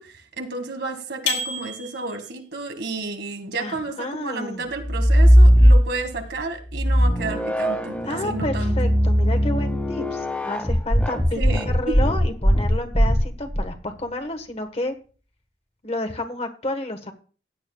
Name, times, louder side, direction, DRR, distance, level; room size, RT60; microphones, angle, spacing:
voice 1, 0.0-8.7 11.2-12.0, right 3 dB, 70° right, 5 dB, 1.9 m, -31 dB
sound 1, 1.3-2.4, left 4 dB, 85° left, 4.8 m, -29 dB
voice 2, 3.6-4.6 8.0-11.4 11.7-14.9 15.8-17.1, left 1 dB, 35° left, 6 dB, 1.4 m, -30 dB
sound 2, 4.8-6.2 6.7-13.7, equal, 10° left, 1.7 m, -18 dB
16.0 x 10.5 x 2.3 m, 0.37 s
head